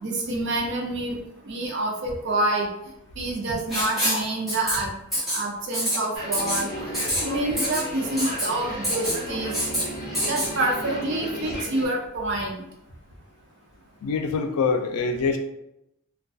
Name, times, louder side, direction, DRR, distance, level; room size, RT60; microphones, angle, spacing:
voice 1, 0.0-1.2 1.5-2.7 3.2-4.9 5.3-6.7 7.0-9.5 10.2-12.6, right 2 dB, 50° right, 0 dB, 0.4 m, -27 dB
Writing, 3.7-4.2 4.5-4.7 5.1-5.4 5.7-6.0 6.3-6.6 6.9-7.2 7.6-7.8 8.2-8.5 8.8-9.2 9.5-9.8 10.1-10.5, equal, ahead, 1.1 m, -25 dB
sound 1, 6.1-11.9, equal, 45° left, 0.9 m, -34 dB
voice 2, 14.0-15.4, left 4 dB, 90° left, 5 dB, 0.4 m, -24 dB
2.3 x 2.2 x 2.6 m, 0.83 s
head